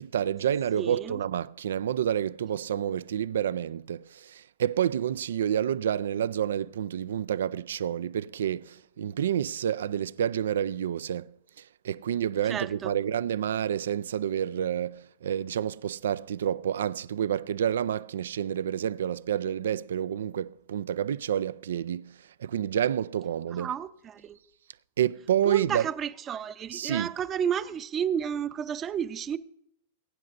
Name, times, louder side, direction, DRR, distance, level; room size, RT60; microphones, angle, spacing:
voice 1, 0.0-11.3 11.6-23.7 25.0-25.9 26.7-27.1, right 9 dB, 75° right, 0.3 m, -29 dB
voice 2, 0.8-1.2 12.4-12.9 23.5-24.4 25.4-29.4, right 8 dB, 30° right, 0.6 m, -32 dB
22.0 x 9.3 x 2.6 m
hypercardioid pair, 110°, 0 cm